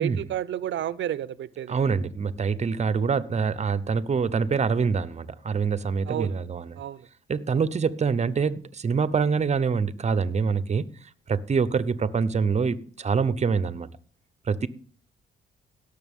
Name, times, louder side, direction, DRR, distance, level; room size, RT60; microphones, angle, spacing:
voice 1, 0.0-1.8 6.1-6.3 6.8-7.0, right 11 dB, 65° right, 0.6 m, -30 dB
voice 2, 1.7-6.8 7.3-10.9 11.3-13.9 14.5-14.7, right 5 dB, 35° right, 0.8 m, -25 dB
17.5 x 6.8 x 3.7 m
cardioid pair, 85°, 21 cm